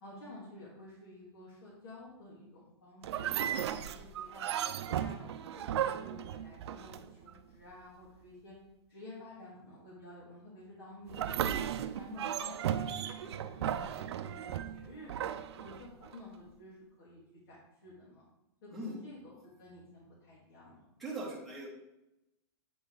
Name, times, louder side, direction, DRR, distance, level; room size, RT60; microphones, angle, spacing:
voice 1, 0.0-4.4 4.8-8.5 8.9-11.6 12.0-12.9 13.2-17.6 17.8-18.2 18.6-20.9, left 1 dB, 65° left, -7 dB, 2.5 m, -51 dB
sound 1, 3.0-7.3 11.1-16.2, right 10 dB, 75° right, 0.5 m, -35 dB
voice 2, 18.7-19.0 21.0-21.7, right 1 dB, ahead, -8 dB, 1.7 m, -40 dB
8.5 x 3.5 x 3.9 m, 0.89 s
hypercardioid pair, 145°, 14 cm